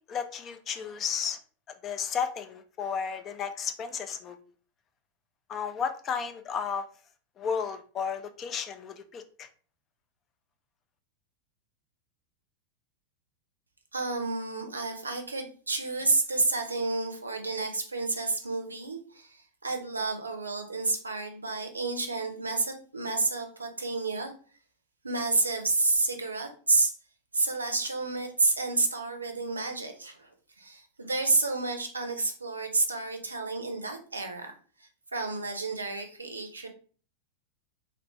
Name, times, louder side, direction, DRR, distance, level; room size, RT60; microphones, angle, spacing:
voice 1, 0.0-1.4 1.8-4.3 5.5-6.9 7.4-9.5, left 6 dB, 30° left, 8 dB, 0.4 m, -33 dB
voice 2, 13.9-24.3 25.0-26.9 27.3-30.3 30.6-34.5 35.1-36.7, right 3 dB, 80° right, 5 dB, 0.5 m, -30 dB
3.2 x 2.5 x 3.0 m, 0.41 s
figure-of-eight pair, 90°, 0 cm